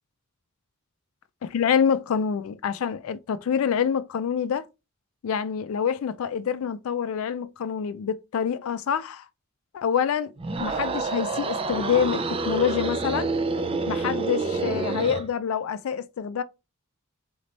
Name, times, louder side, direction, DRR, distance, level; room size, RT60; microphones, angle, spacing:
voice 1, 1.4-4.7 5.2-9.3 9.7-10.3 10.6-13.3 13.9-16.4, left 7 dB, 70° left, 0.3 m, -26 dB
sound 1, 10.4-15.3, right 3 dB, 25° right, 0.4 m, -28 dB
3.9 x 3.3 x 4.0 m
head